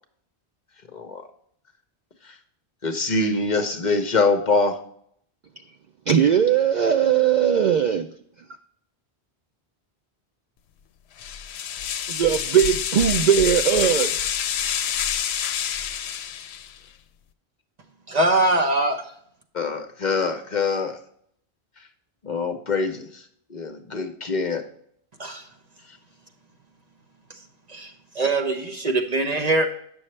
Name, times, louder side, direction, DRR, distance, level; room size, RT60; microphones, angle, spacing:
voice 1, 0.9-1.3 2.2-2.4 2.8-4.8 19.5-21.0 21.8-21.9 22.2-24.7 25.9-26.0, left 3 dB, 50° left, 0.9 m, -24 dB
voice 2, 6.1-8.1 12.1-14.1, right 8 dB, 55° right, 0.5 m, -19 dB
sound 1, 11.2-16.8, left 9 dB, 80° left, 0.8 m, -27 dB
voice 3, 18.1-19.0 25.2-25.4 27.7-29.7, right 2 dB, 40° right, 1.0 m, -22 dB
8.8 x 6.3 x 3.2 m
omnidirectional pair, 1.1 m